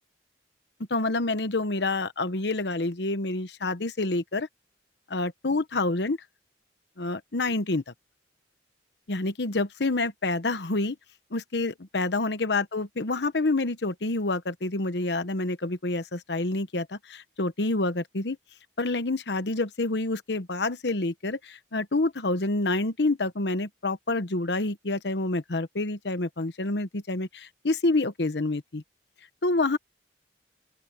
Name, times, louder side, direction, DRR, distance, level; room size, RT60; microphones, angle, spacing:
voice 1, 0.9-4.5 5.1-6.2 7.0-7.9 9.1-11.0 11.3-18.4 18.8-28.8 29.4-29.8, left 2 dB, 70° left, 1.1 m, -28 dB
open air
head